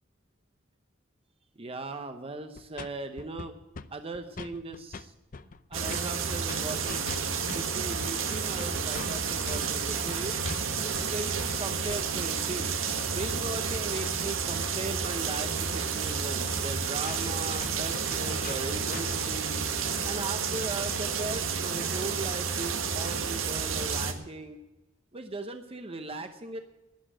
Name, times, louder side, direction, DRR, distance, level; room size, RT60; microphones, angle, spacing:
voice 1, 1.6-3.5 3.9-5.1 5.4-7.1 7.5-10.4 10.8-12.7 13.1-19.5 20.0-24.6 25.1-26.6, right 2 dB, 30° right, 7 dB, 0.8 m, -38 dB
sound 1, 2.6-2.9 3.2-3.9 4.1-5.0 5.3-12.3 15.6-15.7 16.0-16.1 16.4-16.5 16.7-16.8 17.1-19.2, left 4 dB, 45° left, 0.6 m, -42 dB
sound 2, 5.7-24.1, right 6 dB, 85° right, 1.6 m, -31 dB
11.5 x 11.0 x 8.8 m, 1.1 s
head